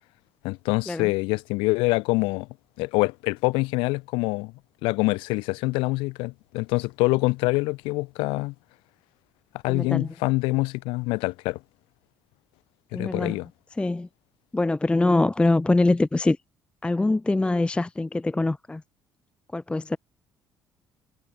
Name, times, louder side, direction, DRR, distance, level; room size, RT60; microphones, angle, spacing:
voice 1, 0.4-2.5 2.8-4.5 4.8-8.5 9.6-11.6 12.9-13.5, left 24 dB, 65° left, 0.6 m, -25 dB
voice 2, 9.7-10.1 12.9-13.4 13.8-14.1 14.5-16.4 16.8-18.8 19.5-20.0, left 2 dB, 10° left, 0.4 m, -23 dB
figure-of-eight pair, 50°, 10 cm